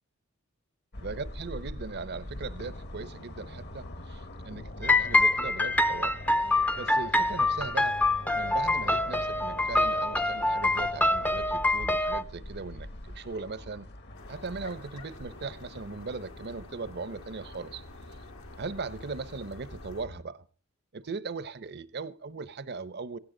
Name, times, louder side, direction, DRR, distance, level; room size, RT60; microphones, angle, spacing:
sound 1, 0.9-20.2, left 1 dB, 55° left, 1.4 m, -43 dB
voice 1, 1.0-6.2 6.7-8.0 8.3-13.9 14.3-17.8 18.6-20.4 20.9-23.2, right 4 dB, 50° right, 0.8 m, -39 dB
sound 2, 4.8-12.2, left 2 dB, 10° left, 0.6 m, -25 dB
sound 3, 14.1-20.0, left 3 dB, 85° left, 2.5 m, -51 dB
17.0 x 15.5 x 3.9 m
head